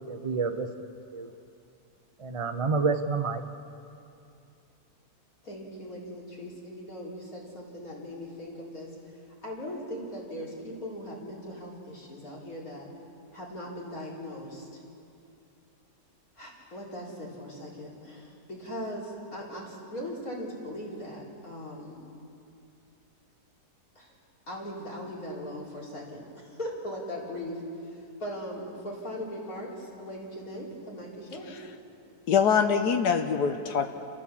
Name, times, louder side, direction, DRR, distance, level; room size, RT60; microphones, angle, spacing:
voice 1, 0.1-0.7 1.1-1.3 2.2-3.4, right 4 dB, 30° right, 6 dB, 0.6 m, -28 dB
voice 2, 5.4-9.2 9.4-12.9 13.3-14.7 16.4-22.0 24.0-24.1 24.5-31.5, equal, 55° left, -4 dB, 4.4 m, -39 dB
voice 3, 32.3-33.9, left 6 dB, 75° left, 6 dB, 1.5 m, -24 dB
30.0 x 14.0 x 7.3 m, 2.6 s
omnidirectional pair, 1.8 m